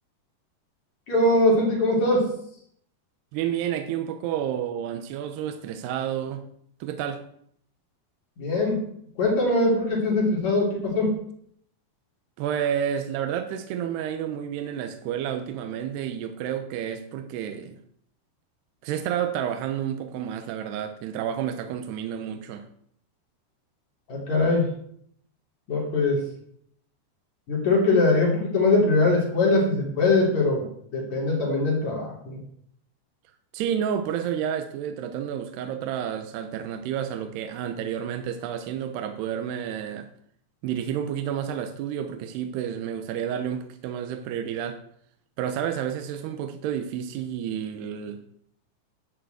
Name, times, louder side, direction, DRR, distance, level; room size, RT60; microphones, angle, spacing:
voice 1, 1.1-2.3 8.4-8.8 9.2-11.2 24.1-24.7 25.7-26.3 27.5-30.7 30.9-32.4, left 2 dB, 45° left, -2 dB, 3.8 m, -22 dB
voice 2, 3.3-6.5 6.8-7.2 12.4-17.8 18.8-22.7 33.5-40.1 40.6-44.8 45.4-48.2, right 9 dB, 80° right, 6 dB, 2.8 m, -30 dB
11.0 x 6.7 x 7.9 m, 0.67 s
omnidirectional pair, 4.9 m